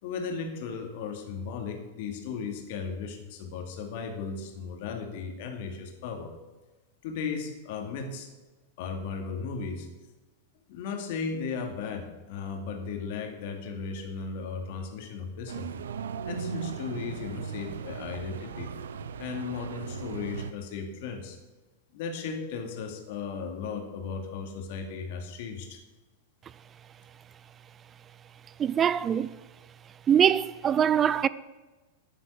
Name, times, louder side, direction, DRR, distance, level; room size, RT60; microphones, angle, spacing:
voice 1, 0.0-6.3 7.0-8.3 8.8-9.9 10.7-15.7 16.2-18.7 19.2-21.4 21.9-25.8, left 5 dB, 60° left, 2.5 m, -36 dB
sound 1, 15.5-20.5, right 6 dB, 80° right, 0.8 m, -37 dB
voice 2, 28.6-29.3 30.1-31.3, right 8 dB, 25° right, 0.4 m, -23 dB
10.0 x 10.0 x 6.7 m
hypercardioid pair, 110°, 0 cm